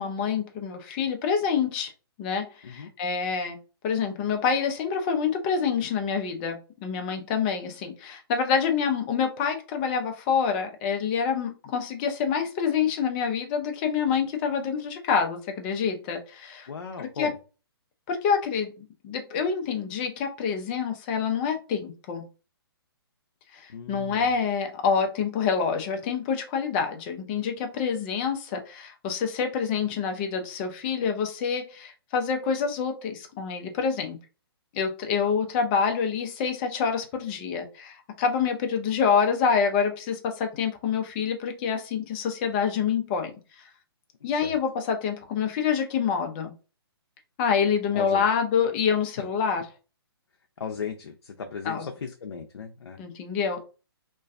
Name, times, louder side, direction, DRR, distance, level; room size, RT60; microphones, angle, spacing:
voice 1, 0.0-1.9 2.2-3.6 3.8-16.7 17.0-17.3 18.1-22.2 23.5-34.2 34.7-43.7 44.2-46.5 47.4-49.7 51.6-51.9 53.0-53.6, left 6 dB, 25° left, 4 dB, 0.4 m, -27 dB
voice 2, 16.7-17.4 23.7-24.3 44.4-44.5 47.9-48.3 50.6-53.0, left 6 dB, 90° left, 3 dB, 0.4 m, -36 dB
2.5 x 2.2 x 2.3 m, 0.33 s
hypercardioid pair, 150°, 13 cm